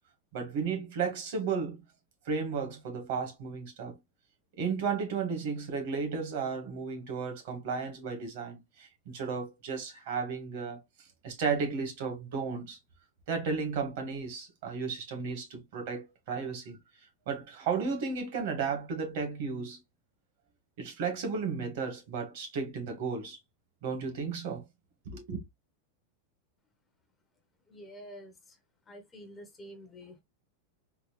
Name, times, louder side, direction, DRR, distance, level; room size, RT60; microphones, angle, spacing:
voice 1, 0.3-1.8 2.2-4.0 4.6-10.8 11.2-12.8 13.3-16.8 17.3-19.8 20.8-23.4 23.8-24.6 25.0-25.4, right 5 dB, 55° right, 1.3 m, -34 dB
voice 2, 27.7-28.6 28.9-30.2, equal, 10° left, 0.6 m, -48 dB
3.7 x 2.1 x 3.0 m
supercardioid pair, 170°, 0 cm